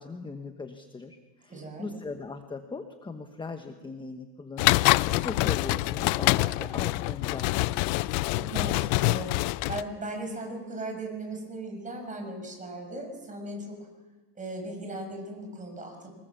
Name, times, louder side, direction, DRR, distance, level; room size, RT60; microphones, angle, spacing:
voice 1, 0.0-4.8 5.1-7.9, left 3 dB, 10° left, 7 dB, 1.1 m, -39 dB
voice 2, 1.5-1.9 8.3-9.3 9.7-13.7 14.4-16.1, right 2 dB, 15° right, 3 dB, 6.2 m, -37 dB
sound 1, 4.6-9.8, left 21 dB, 75° left, 0.7 m, -25 dB
25.0 x 20.5 x 7.2 m, 1.2 s
cardioid pair, 135°, 43 cm